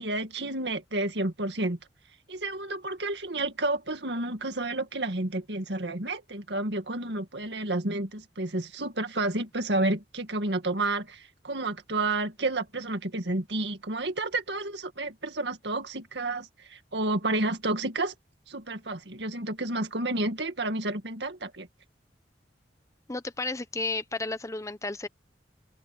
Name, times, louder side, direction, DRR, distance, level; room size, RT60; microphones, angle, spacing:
voice 1, 0.0-1.8 2.3-18.1 18.5-21.7, right 2 dB, 70° right, 2.1 m, -30 dB
voice 2, 23.1-25.1, left 3 dB, 20° left, 0.8 m, -32 dB
open air
head